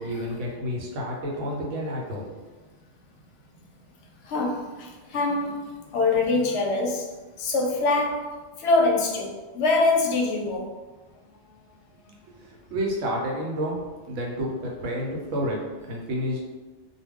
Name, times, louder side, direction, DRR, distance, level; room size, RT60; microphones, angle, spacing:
voice 1, 0.0-2.2 12.4-13.8 14.1-16.4, equal, 80° right, -1 dB, 1.0 m, -30 dB
voice 2, 4.3-5.6 5.9-7.1 7.4-8.3 8.6-10.7, left 3 dB, 65° left, 0 dB, 0.8 m, -24 dB
2.3 x 2.2 x 3.5 m, 1.2 s
omnidirectional pair, 1.3 m